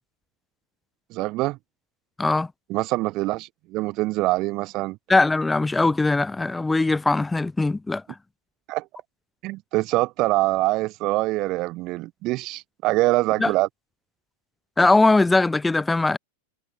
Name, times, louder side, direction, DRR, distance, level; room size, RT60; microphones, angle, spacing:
voice 1, 1.1-1.6 2.7-5.0 8.7-8.9 9.4-13.7, right 20 dB, 40° right, 2.0 m, -24 dB
voice 2, 5.1-8.0 13.4-13.5 14.8-16.2, left 3 dB, 10° left, 1.6 m, -20 dB
figure-of-eight pair, 90°, 0 cm